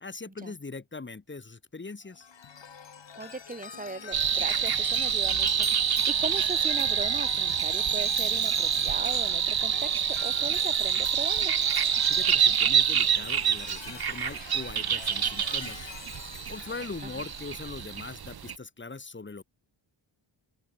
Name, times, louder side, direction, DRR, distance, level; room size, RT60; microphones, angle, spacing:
voice 1, 0.0-2.3 12.1-15.9 16.5-19.4, left 3 dB, 25° left, 1.6 m, -41 dB
Chime, 2.1-18.0, left 6 dB, 65° left, 6.5 m, -43 dB
voice 2, 3.2-11.5 17.0-17.1, right 3 dB, 15° right, 1.7 m, -38 dB
sound 1, 4.1-18.5, right 8 dB, 50° right, 1.1 m, -27 dB
open air
wide cardioid pair, 140°, 48 cm